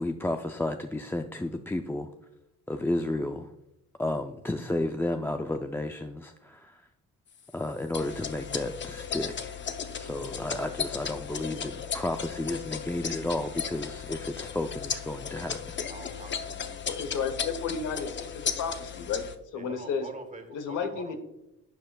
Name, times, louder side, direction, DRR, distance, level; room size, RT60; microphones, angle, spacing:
voice 1, 0.0-2.1 2.7-3.5 4.0-6.9 7.5-15.8, left 1 dB, 10° left, 6 dB, 0.4 m, -32 dB
sound 1, 7.9-19.4, left 7 dB, 40° left, 0.7 m, -35 dB
voice 2, 15.4-16.9 19.5-21.2, right 2 dB, 25° right, 6 dB, 1.4 m, -46 dB
voice 3, 16.9-19.2 19.5-20.1 20.5-21.2, left 6 dB, 80° left, 9 dB, 1.1 m, -32 dB
11.5 x 7.6 x 2.3 m, 0.88 s
cardioid pair, 90°, 30 cm